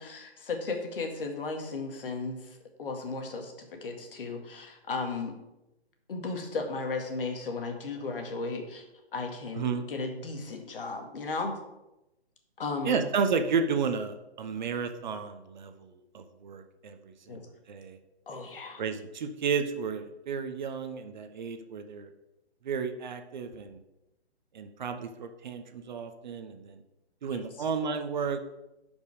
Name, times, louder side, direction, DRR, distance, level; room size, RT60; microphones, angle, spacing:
voice 1, 0.0-5.4 6.1-8.8 9.1-11.6 12.6-13.0 17.3-17.5 18.3-18.8 27.3-27.4, left 3 dB, 55° left, 3 dB, 2.1 m, -35 dB
voice 2, 12.8-17.4 17.7-18.0 18.8-22.1 22.6-23.8 24.5-26.8 27.2-28.4, right 5 dB, 45° right, 7 dB, 0.9 m, -32 dB
10.0 x 5.5 x 5.0 m, 0.94 s
figure-of-eight pair, 135°, 33 cm